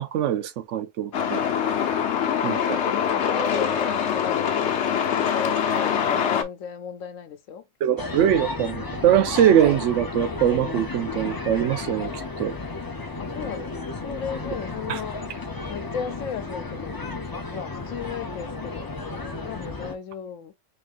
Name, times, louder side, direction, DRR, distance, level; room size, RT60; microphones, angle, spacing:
voice 1, 0.0-1.4 2.4-2.8 7.8-12.1 12.4-12.5 14.9-15.0, right 10 dB, 75° right, 0.9 m, -22 dB
Truck, 1.1-6.4, left 8 dB, 65° left, 1.0 m, -24 dB
voice 2, 2.2-4.9 5.2-7.6 13.2-13.7 14.0-15.2 15.7-18.9 19.4-20.5, left 7 dB, 90° left, 1.1 m, -35 dB
sound 1, 8.0-20.0, left 3 dB, 25° left, 0.5 m, -33 dB
4.1 x 3.7 x 2.5 m
omnidirectional pair, 1.3 m